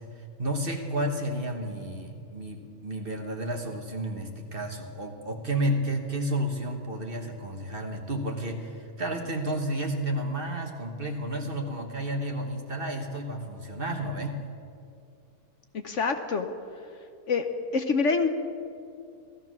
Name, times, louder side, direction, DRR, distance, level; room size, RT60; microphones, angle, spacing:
voice 1, 0.0-14.4, right 1 dB, 40° right, 3 dB, 1.4 m, -31 dB
voice 2, 15.7-16.5 17.3-17.5 17.7-18.3, left 4 dB, 55° left, 6 dB, 1.1 m, -25 dB
16.5 x 14.0 x 6.2 m, 2.4 s
omnidirectional pair, 1.6 m